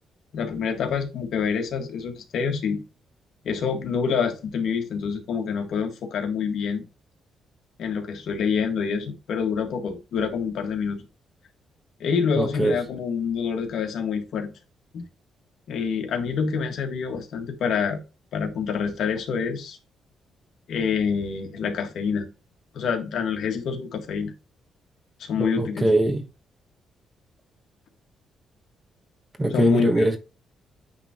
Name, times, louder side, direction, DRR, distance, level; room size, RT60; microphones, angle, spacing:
voice 1, 0.3-2.8 3.4-6.8 7.8-11.0 12.0-14.5 14.9-15.1 15.7-18.0 18.3-19.8 20.7-22.3 22.7-24.3 25.2-25.9 29.5-30.1, left 6 dB, 70° left, 1.8 m, -26 dB
voice 2, 12.4-12.8 25.4-26.2 29.4-30.2, right 2 dB, 20° right, 1.1 m, -22 dB
9.4 x 3.6 x 3.0 m
cardioid pair, 120°, 0 cm